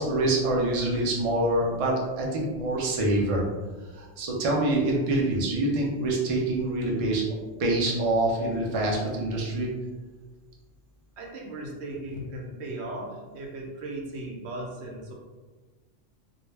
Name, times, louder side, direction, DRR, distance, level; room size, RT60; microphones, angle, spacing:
voice 1, 0.0-3.5 3.9-7.2 7.6-9.7, right 1 dB, 55° right, -2 dB, 0.4 m, -25 dB
voice 2, 11.2-15.1, right 1 dB, 70° right, -1 dB, 0.8 m, -37 dB
2.2 x 2.1 x 3.2 m, 1.3 s
omnidirectional pair, 1.2 m